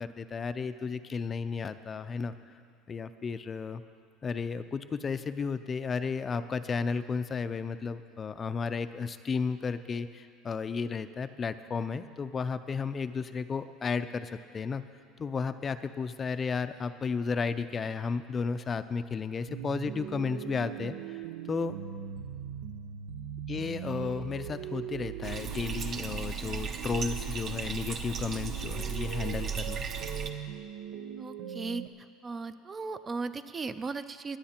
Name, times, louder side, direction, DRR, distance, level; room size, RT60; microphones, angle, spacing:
voice 1, 0.0-2.3 2.9-3.8 4.2-14.8 15.2-21.2 21.5-21.8 23.5-29.9, left 5 dB, 25° left, 11 dB, 0.5 m, -33 dB
sound 1, 19.5-31.9, right 9 dB, 85° right, 0.7 m, -40 dB
Bathtub (filling or washing), 25.2-30.3, right 6 dB, 40° right, 0.9 m, -36 dB
voice 2, 31.2-31.8 32.2-34.4, right 4 dB, 25° right, 11 dB, 0.5 m, -36 dB
18.0 x 9.8 x 4.4 m, 2.1 s
supercardioid pair, 115°, 0 cm